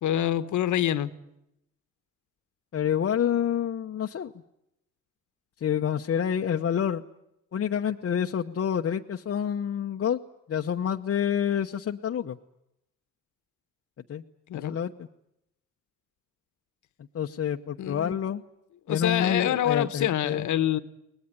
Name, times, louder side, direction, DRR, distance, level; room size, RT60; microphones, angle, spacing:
voice 1, 0.0-1.1 14.5-14.8 17.8-18.1 18.9-20.8, left 11 dB, 75° left, 13 dB, 1.4 m, -26 dB
voice 2, 2.7-4.3 5.6-7.0 7.5-10.2 10.5-12.4 14.1-14.2 14.5-14.9 17.1-18.4 18.9-20.6, left 8 dB, 50° left, 2 dB, 1.0 m, -28 dB
23.0 x 19.5 x 9.7 m, 0.83 s
cardioid pair, 90°, 30 cm